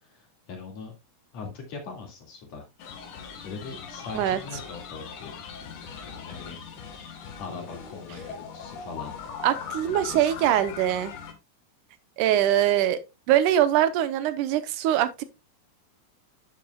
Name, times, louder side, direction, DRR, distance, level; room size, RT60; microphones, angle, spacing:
voice 1, 0.0-0.9 1.3-2.6 3.0-6.6 6.8-9.1 9.7-10.3, left 4 dB, 60° left, 3.3 m, -41 dB
sound 1, 2.8-11.3, left 6 dB, 80° left, 2.9 m, -40 dB
voice 2, 9.4-11.1 12.2-13.0 13.3-15.2, right 11 dB, 85° right, 2.4 m, -23 dB
10.5 x 7.4 x 2.3 m
omnidirectional pair, 3.5 m